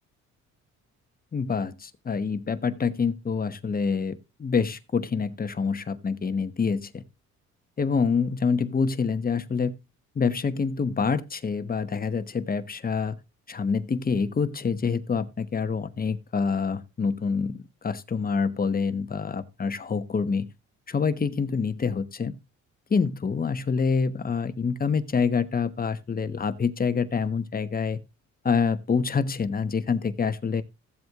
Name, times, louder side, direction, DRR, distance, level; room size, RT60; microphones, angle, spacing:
voice 1, 1.3-7.0 7.8-9.7 10.1-13.2 13.5-20.5 20.9-22.3 22.9-28.0 28.4-30.6, left 5 dB, 30° left, 1.1 m, -26 dB
15.5 x 7.8 x 2.4 m
cardioid pair, 90°, 30 cm